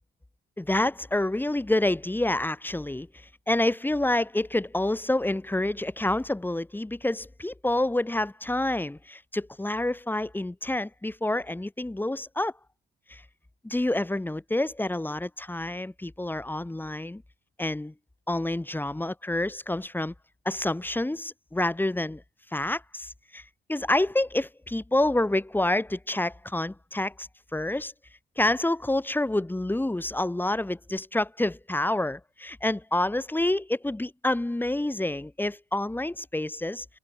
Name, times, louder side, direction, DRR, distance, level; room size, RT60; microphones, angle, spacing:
voice 1, 0.6-3.1 3.5-12.5 13.1-13.2 13.6-17.2 17.6-17.9 18.3-20.1 20.5-22.2 22.5-27.9 28.4-36.9, left 1 dB, 10° left, 2.3 m, -28 dB
cardioid pair, 90°, 20 cm